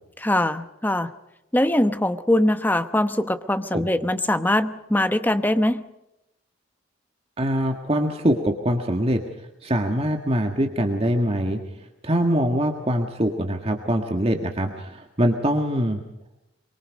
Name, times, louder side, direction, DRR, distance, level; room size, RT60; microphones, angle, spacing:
voice 1, 0.2-1.1 1.5-5.8, left 1 dB, 10° left, 10 dB, 0.9 m, -22 dB
voice 2, 7.4-9.2 9.6-11.6 12.0-16.0, equal, 30° right, 4 dB, 1.7 m, -23 dB
24.0 x 24.0 x 5.3 m, 0.89 s
head